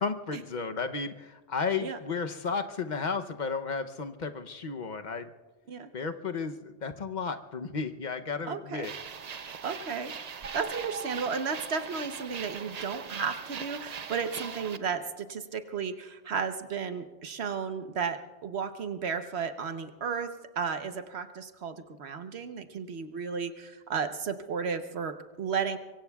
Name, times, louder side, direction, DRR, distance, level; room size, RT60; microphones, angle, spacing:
voice 1, 0.0-5.3 5.9-8.9, left 5 dB, 45° left, 7 dB, 0.8 m, -33 dB
voice 2, 8.5-8.9 9.6-10.1 10.5-25.8, right 6 dB, 75° right, 8 dB, 1.2 m, -34 dB
sound 1, 8.8-14.8, right 6 dB, 45° right, 0.6 m, -40 dB
24.5 x 23.5 x 2.3 m, 1.2 s
omnidirectional pair, 1.1 m